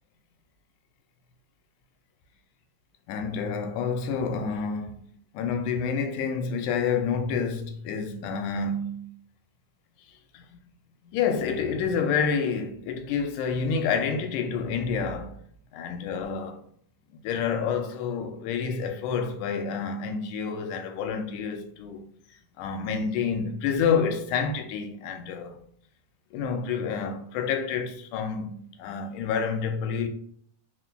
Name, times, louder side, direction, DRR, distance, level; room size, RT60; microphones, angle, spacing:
voice 1, 3.1-4.9 5.3-9.1 10.3-10.6 11.1-15.4 15.7-16.6 17.2-22.1 22.6-25.6 26.3-30.1, left 6 dB, 85° left, 2.1 m, -28 dB
4.4 x 4.2 x 2.2 m
omnidirectional pair, 3.5 m